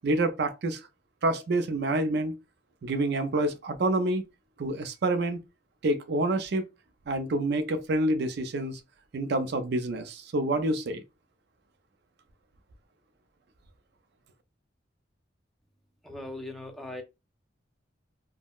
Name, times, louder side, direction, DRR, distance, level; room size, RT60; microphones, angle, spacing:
voice 1, 0.0-0.8 1.2-2.4 2.8-4.2 4.6-5.4 5.8-6.6 7.1-8.8 9.1-11.0, right 2 dB, 65° right, 0.4 m, -27 dB
voice 2, 16.0-17.0, left 1 dB, ahead, 0.5 m, -39 dB
3.6 x 2.0 x 2.3 m
head